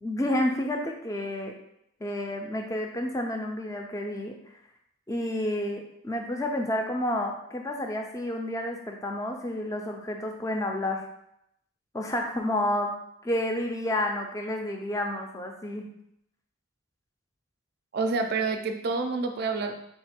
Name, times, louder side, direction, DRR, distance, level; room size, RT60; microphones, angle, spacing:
voice 1, 0.0-1.6 2.0-4.4 5.1-11.0 11.9-12.9 13.2-15.9, left 1 dB, 15° left, 2 dB, 0.4 m, -30 dB
voice 2, 17.9-19.8, right 3 dB, 50° right, 5 dB, 0.4 m, -28 dB
3.8 x 2.4 x 4.3 m, 0.77 s
head